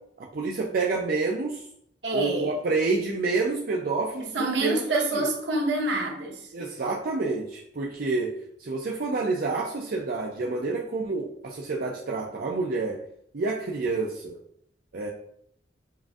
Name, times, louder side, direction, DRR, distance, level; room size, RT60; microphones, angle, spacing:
voice 1, 0.2-1.6 2.1-4.3 4.6-5.3 6.5-8.3 8.6-13.0 13.3-14.4 14.9-15.1, right 3 dB, 55° right, -2 dB, 0.5 m, -28 dB
voice 2, 2.0-2.5 4.2-6.5, right 2 dB, 80° right, 0 dB, 1.0 m, -27 dB
7.3 x 2.6 x 2.4 m, 0.71 s
head